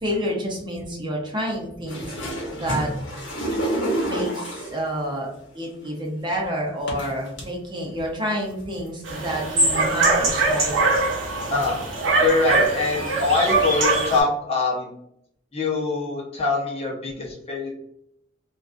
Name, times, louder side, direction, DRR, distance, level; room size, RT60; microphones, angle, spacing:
voice 1, 0.0-2.1 2.6-2.9 4.0-10.7, equal, 25° right, -1 dB, 0.6 m, -29 dB
sound 1, 1.9-4.9 5.8-5.9 6.9-7.4 8.0-8.1 8.5-8.9 9.6-9.7, right 1 dB, 70° left, 0.9 m, -28 dB
sound 2, 9.0-14.2, right 3 dB, 75° right, 0.8 m, -22 dB
voice 2, 12.2-14.9 15.5-17.7, left 3 dB, 35° left, -2 dB, 0.6 m, -23 dB
2.4 x 2.3 x 2.4 m, 0.74 s
head